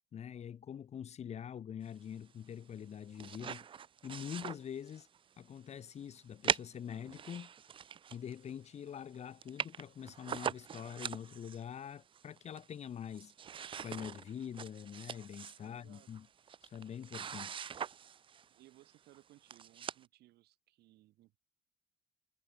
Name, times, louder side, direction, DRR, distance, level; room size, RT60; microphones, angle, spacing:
voice 1, 0.1-3.7 4.0-5.1 5.4-7.5 8.1-13.3 13.8-16.3 16.6-17.6, left 8 dB, 40° left, 0.8 m, -45 dB
sound 1, 2.8-5.2 5.6-5.7 6.4-8.5 8.9-9.0 9.1-9.2 9.4-11.6 12.1-12.8 13.1-18.5 19.1-19.2 19.5-20.1, right 8 dB, 30° right, 0.4 m, -42 dB
voice 2, 15.6-16.1 18.5-21.4, right 16 dB, 75° right, 1.2 m, -63 dB
cardioid pair, 110°, 17 cm